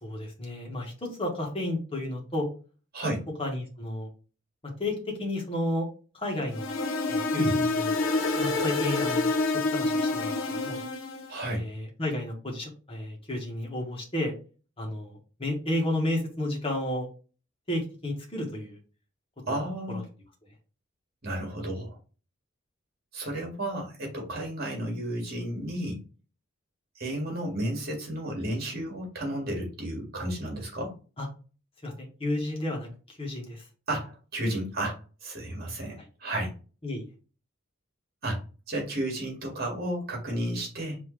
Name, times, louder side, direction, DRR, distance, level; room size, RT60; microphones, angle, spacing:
voice 1, 0.0-2.5 3.4-4.1 4.6-5.9 6.1-6.7 7.1-7.9 8.3-10.8 11.4-14.3 14.8-17.1 17.7-18.8 19.5-19.6 19.9-20.0 31.2-31.3 31.8-33.6 36.8-37.1, left 1 dB, 25° left, -1 dB, 1.5 m, -32 dB
sound 1, 6.5-11.3, left 3 dB, 80° left, 0.9 m, -27 dB
voice 2, 11.3-11.6 19.5-20.0 21.2-22.0 23.1-26.0 27.0-30.9 33.9-36.5 38.2-38.4 38.7-41.0, right 1 dB, 50° right, 0 dB, 2.1 m, -32 dB
5.5 x 3.1 x 3.2 m, 0.35 s
head